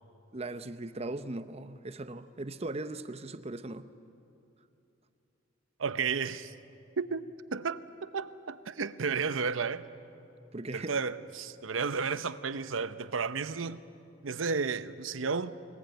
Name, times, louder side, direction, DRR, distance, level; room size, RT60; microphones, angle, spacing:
voice 1, 0.3-3.9 10.5-10.9, right 2 dB, 30° right, 0.8 m, -39 dB
voice 2, 5.8-6.5 7.0-7.3 7.5-9.8 10.7-13.8 14.2-15.5, right 5 dB, 90° right, 0.8 m, -32 dB
24.0 x 20.5 x 9.2 m
head